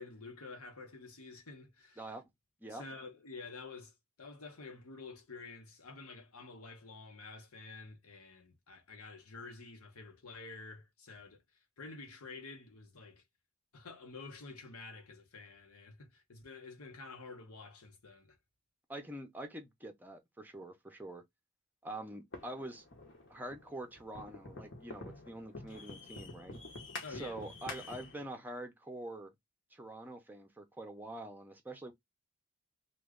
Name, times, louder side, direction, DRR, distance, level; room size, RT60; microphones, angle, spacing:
voice 1, 0.0-2.0 2.7-11.4 11.8-13.2 13.7-18.4 27.0-27.4, left 3 dB, 85° left, 1.1 m, -49 dB
voice 2, 2.0-2.3 2.6-2.8 18.9-21.2 21.8-22.8 23.3-26.6 27.1-29.3 29.7-31.9, right 1 dB, 10° right, 0.6 m, -45 dB
sound 1, 22.3-28.3, left 3 dB, 55° left, 1.0 m, -48 dB
3.1 x 2.2 x 3.6 m
head